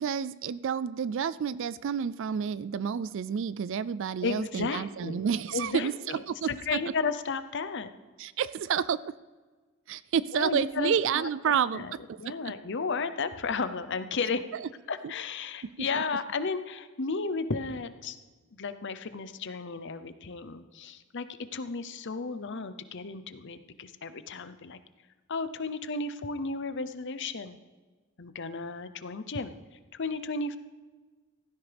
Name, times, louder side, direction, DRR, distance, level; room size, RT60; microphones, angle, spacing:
voice 1, 0.0-6.8 8.2-9.0 9.9-12.2 14.5-14.7 15.9-16.0, right 7 dB, 60° right, 17 dB, 0.3 m, -30 dB
voice 2, 4.2-5.2 5.5-6.2 6.5-7.9 10.3-11.9 12.2-14.4 14.9-18.2 18.6-21.3 21.5-24.8 25.3-27.6 28.2-29.5 29.9-30.6, left 4 dB, 55° left, 11 dB, 0.7 m, -33 dB
16.0 x 15.0 x 3.5 m, 1.4 s
head